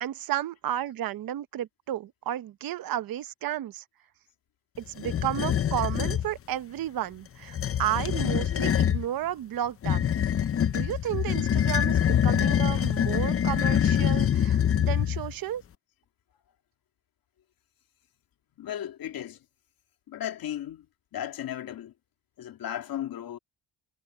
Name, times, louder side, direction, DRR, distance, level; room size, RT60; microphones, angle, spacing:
voice 1, 0.0-3.8 4.8-10.1 10.7-15.6, right 12 dB, 70° right, 1.0 m, -32 dB
sound 1, 5.0-6.3 7.4-9.0 9.8-15.3, left 9 dB, 40° left, 0.7 m, -25 dB
voice 2, 18.6-19.4 20.1-20.9 21.1-21.9 22.4-23.4, left 11 dB, 70° left, 2.7 m, -35 dB
cardioid pair, 135°, 37 cm